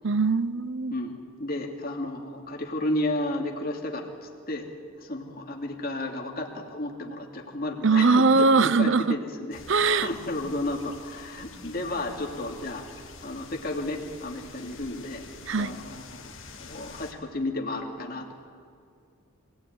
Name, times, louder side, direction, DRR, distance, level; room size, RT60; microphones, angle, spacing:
voice 1, 0.0-0.9 7.8-9.2 9.7-10.1 15.5-15.8, right 4 dB, 60° right, 15 dB, 0.8 m, -21 dB
voice 2, 0.9-4.7 5.0-15.3 15.6-18.3, left 1 dB, 45° left, 1 dB, 2.8 m, -33 dB
sound 1, 9.5-17.1, left 4 dB, 65° left, 2.4 m, -47 dB
26.0 x 19.0 x 9.5 m, 2.4 s
head